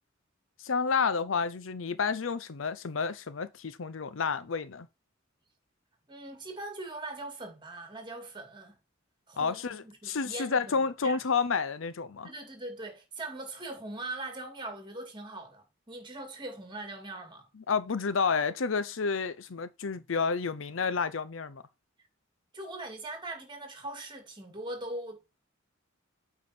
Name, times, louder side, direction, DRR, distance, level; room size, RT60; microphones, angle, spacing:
voice 1, 0.6-4.9 9.4-12.3 17.6-21.6, left 5 dB, 70° left, 0.6 m, -30 dB
voice 2, 6.1-8.8 9.3-11.2 12.2-17.5 22.5-25.4, right 2 dB, 25° right, 2.3 m, -41 dB
8.6 x 4.7 x 4.3 m
head